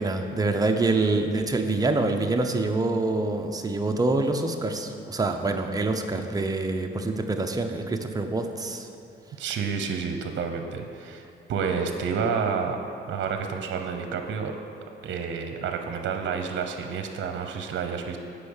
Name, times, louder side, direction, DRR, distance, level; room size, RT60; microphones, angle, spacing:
voice 1, 0.0-8.9, right 2 dB, 20° right, 4 dB, 0.8 m, -26 dB
voice 2, 9.4-12.8 13.1-14.6 15.0-18.2, right 6 dB, 70° right, 5 dB, 0.8 m, -29 dB
8.3 x 5.5 x 7.2 m, 2.6 s
cardioid pair, 90°, 20 cm